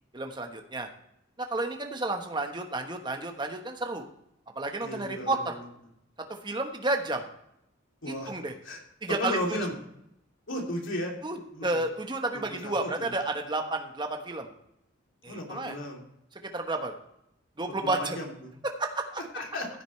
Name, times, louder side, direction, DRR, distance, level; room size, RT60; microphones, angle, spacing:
voice 1, 0.1-0.9 1.4-4.1 4.5-5.6 6.3-7.3 8.1-8.5 9.0-9.6 11.2-14.5 15.2-15.8 16.5-16.9 17.6-18.2 18.6-19.2, right 2 dB, 25° right, 4 dB, 1.2 m, -31 dB
voice 2, 4.8-5.4 8.0-8.3 8.6-8.8 9.2-9.8 10.5-11.1 11.5-11.8 12.5-13.1 15.3-16.0 17.8-18.5 19.3-19.7, left 1 dB, 85° left, 0 dB, 2.9 m, -34 dB
15.0 x 8.9 x 3.2 m, 0.78 s
head